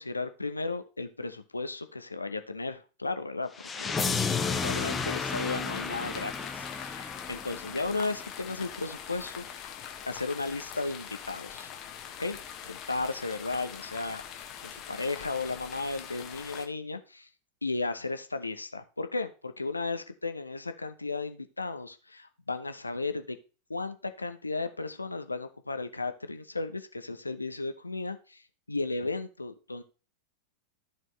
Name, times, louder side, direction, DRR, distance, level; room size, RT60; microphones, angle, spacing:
voice 1, 0.0-4.1 4.6-9.8 10.1-11.7 12.2-12.4 12.6-17.3 17.6-23.4 23.7-29.8, left 3 dB, 80° left, 9 dB, 0.7 m, -35 dB
sound 1, 3.6-8.5, left 5 dB, 15° left, 0.8 m, -32 dB
sound 2, 4.5-16.7, left 9 dB, 35° left, 1.3 m, -43 dB
13.5 x 4.5 x 3.2 m, 0.34 s
figure-of-eight pair, 90°, 0 cm